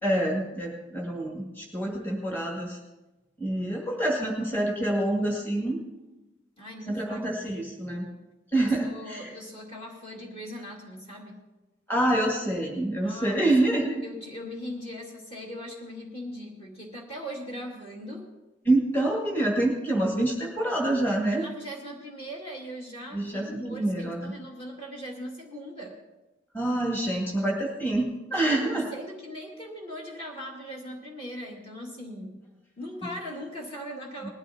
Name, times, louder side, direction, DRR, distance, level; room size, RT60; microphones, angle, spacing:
voice 1, 0.0-2.8 3.4-5.8 6.9-8.1 8.5-9.3 11.9-14.0 18.7-21.5 23.1-24.3 26.5-28.9 34.2-34.3, right 1 dB, 10° left, -2 dB, 2.2 m, -26 dB
voice 2, 6.6-7.5 8.6-11.4 13.0-13.5 14.0-18.2 21.4-26.0 28.3-32.4 32.8-34.3, equal, 30° left, -2 dB, 2.1 m, -40 dB
20.0 x 13.0 x 2.8 m, 1.1 s
head